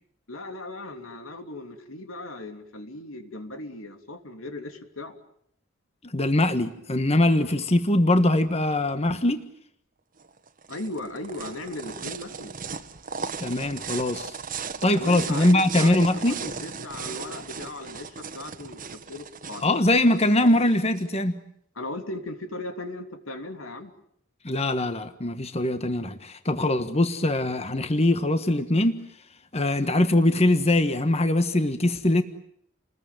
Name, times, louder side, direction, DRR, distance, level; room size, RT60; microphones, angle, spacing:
voice 1, 0.3-5.2 10.7-12.5 14.9-19.8 21.7-23.9, left 2 dB, 90° left, 3.2 m, -37 dB
voice 2, 6.1-9.4 13.4-14.4 14.8-16.4 19.6-21.3 24.4-29.0 29.5-32.2, left 1 dB, 30° left, 1.4 m, -22 dB
sound 1, 10.2-21.1, right 6 dB, 40° right, 1.5 m, -37 dB
29.5 x 21.0 x 9.3 m
head